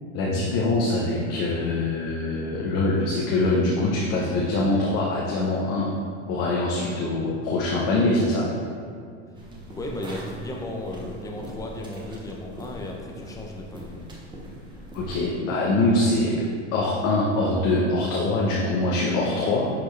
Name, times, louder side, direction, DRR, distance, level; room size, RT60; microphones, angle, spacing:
voice 1, 0.1-5.9 6.3-8.5 14.9-16.4 16.7-19.7, left 2 dB, 40° left, -4 dB, 1.0 m, -23 dB
sound 1, 9.3-15.4, right 1 dB, 10° right, 1.0 m, -41 dB
voice 2, 9.7-14.0, left 1 dB, 10° left, 0 dB, 0.7 m, -35 dB
10.5 x 4.3 x 3.3 m, 2.2 s
supercardioid pair, 140°, 37 cm